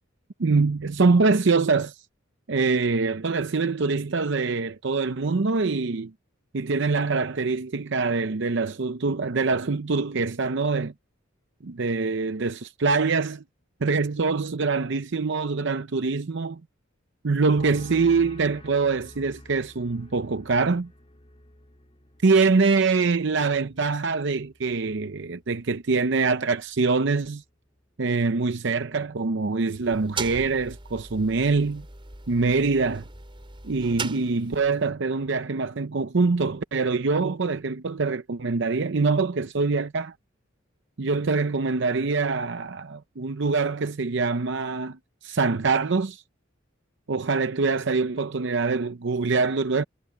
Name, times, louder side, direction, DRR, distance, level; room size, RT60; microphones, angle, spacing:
voice 1, 0.4-2.0 2.5-6.1 6.5-10.9 11.6-13.4 13.8-16.6 17.2-20.9 22.2-27.4 28.0-31.9 32.3-33.0 33.6-40.1 41.0-46.2 47.1-49.8, right 4 dB, 60° right, 0.7 m, -24 dB
sound 1, 17.6-25.0 25.3-25.8, left 1 dB, 30° left, 2.5 m, -49 dB
sound 2, 29.7-34.8, right 4 dB, 25° right, 4.0 m, -38 dB
head